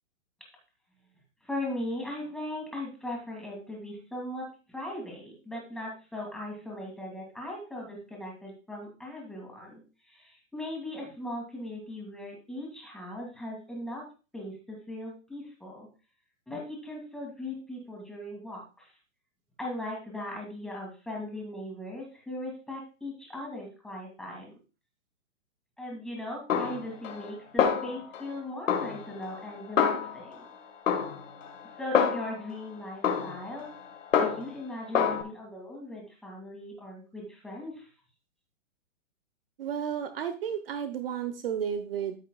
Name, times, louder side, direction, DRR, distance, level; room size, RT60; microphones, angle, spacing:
voice 1, 1.4-14.1 14.3-15.9 16.5-19.0 19.6-24.5 25.8-30.4 31.8-33.7 34.1-37.9, left 1 dB, ahead, -2 dB, 2.1 m, -39 dB
Snare drum, 26.5-27.3 27.6-28.3 28.7-30.5 30.9-32.5 33.0-34.6 34.9-35.2, left 7 dB, 85° left, 2.1 m, -28 dB
voice 2, 39.6-42.2, right 8 dB, 50° right, 9 dB, 0.9 m, -32 dB
14.0 x 5.7 x 2.3 m, 0.33 s
hypercardioid pair, 165°, 38 cm